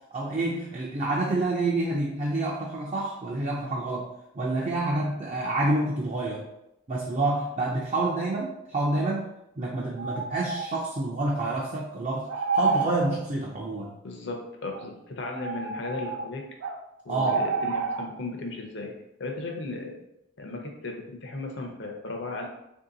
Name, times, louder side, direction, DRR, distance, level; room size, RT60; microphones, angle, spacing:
voice 1, 0.1-6.4 6.9-14.0 17.1-17.4, right 2 dB, 35° right, -4 dB, 0.5 m, -28 dB
sound 1, 2.6-2.7 10.0-10.8 12.3-13.0 14.7-14.9 15.3-16.8 17.2-18.1, right 4 dB, 90° right, 0.4 m, -29 dB
voice 2, 14.0-16.4 17.0-18.9 19.2-20.0 20.4-22.5, left 2 dB, 55° left, 1 dB, 0.7 m, -36 dB
3.0 x 2.7 x 3.8 m, 0.84 s
head